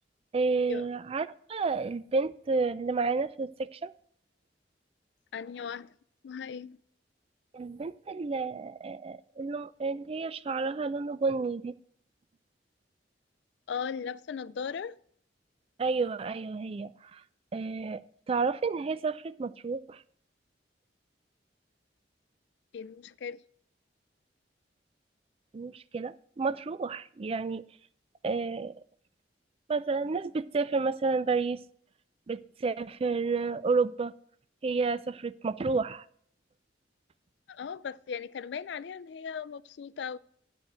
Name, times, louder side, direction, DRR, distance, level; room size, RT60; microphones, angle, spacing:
voice 1, 0.3-3.9 7.5-11.7 15.8-17.2 17.5-18.0 18.3-20.0 25.5-27.6 28.2-28.7 29.7-31.6 32.3-34.1 34.6-36.0, right 4 dB, 30° right, 0.4 m, -30 dB
voice 2, 5.3-5.9 6.2-6.8 13.7-15.0 22.7-23.4 37.5-40.2, left 6 dB, 70° left, 0.4 m, -37 dB
11.5 x 4.5 x 7.4 m
head